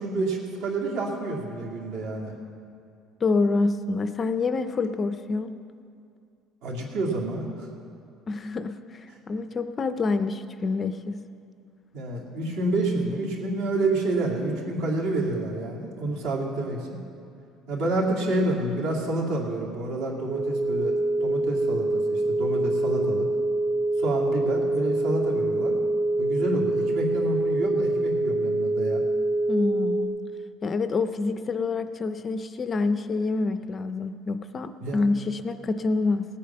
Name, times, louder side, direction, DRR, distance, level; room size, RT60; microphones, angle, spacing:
voice 1, 0.0-2.3 6.6-7.7 11.9-17.0 17.7-23.3 24.0-25.7 26.2-29.0 34.8-35.0, right 2 dB, 70° right, -2 dB, 2.5 m, -28 dB
voice 2, 3.2-5.5 8.3-8.8 9.3-11.2 29.5-30.2 30.6-36.2, left 3 dB, 20° left, 10 dB, 0.4 m, -27 dB
sound 1, 20.3-30.1, right 2 dB, 15° right, 1.0 m, -25 dB
18.5 x 8.5 x 5.8 m, 2.4 s
cardioid pair, 170°, 0 cm